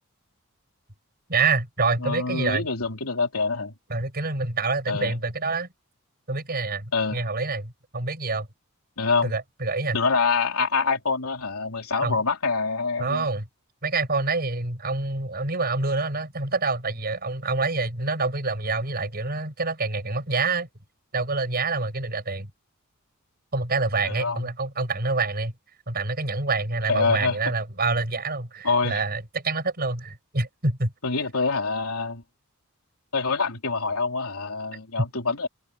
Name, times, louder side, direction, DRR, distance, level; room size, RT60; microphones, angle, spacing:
voice 1, 1.3-2.7 3.9-5.7 6.3-8.5 9.2-10.0 12.0-12.2 13.0-13.5 13.8-20.7 21.1-22.5 23.5-25.5 25.9-30.9, right 3 dB, 45° right, 5.6 m, -27 dB
voice 2, 2.0-3.7 4.9-5.1 6.9-7.2 9.0-9.4 9.9-13.3 24.0-24.5 26.9-27.4 28.6-29.0 31.0-32.2 33.1-35.5, left 4 dB, 85° left, 3.1 m, -25 dB
head